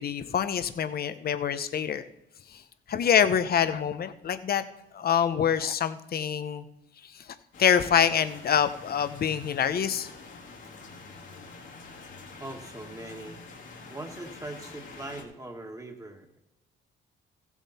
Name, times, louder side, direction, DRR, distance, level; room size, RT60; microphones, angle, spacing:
voice 1, 0.0-2.0 2.5-2.6 2.9-4.6 4.9-6.7 7.1-7.2 7.6-10.1, left 8 dB, 50° left, 12 dB, 0.8 m, -25 dB
sound 1, 7.5-15.2, left 3 dB, 70° left, 2.6 m, -46 dB
voice 2, 12.4-13.5 13.9-16.4, right 2 dB, 15° right, 3 dB, 1.8 m, -41 dB
15.5 x 7.2 x 4.2 m, 0.93 s
cardioid pair, 90°, 20 cm